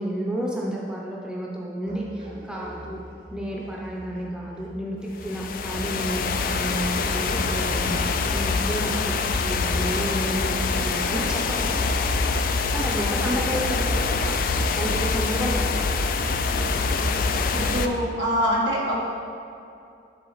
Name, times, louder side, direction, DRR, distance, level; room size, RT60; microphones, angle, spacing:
voice 1, 0.0-3.0 3.3-6.2 6.5-8.0 8.3-12.0 12.7-14.5 14.7-15.8, right 1 dB, 5° right, -4 dB, 0.7 m, -31 dB
sound 1, 1.9-17.6, equal, 45° right, 1.4 m, -44 dB
sound 2, 5.2-17.9, left 4 dB, 50° left, 0.3 m, -25 dB
voice 2, 12.9-13.4 17.5-19.0, equal, 80° right, -4 dB, 1.7 m, -25 dB
10.5 x 4.1 x 4.0 m, 2.5 s
head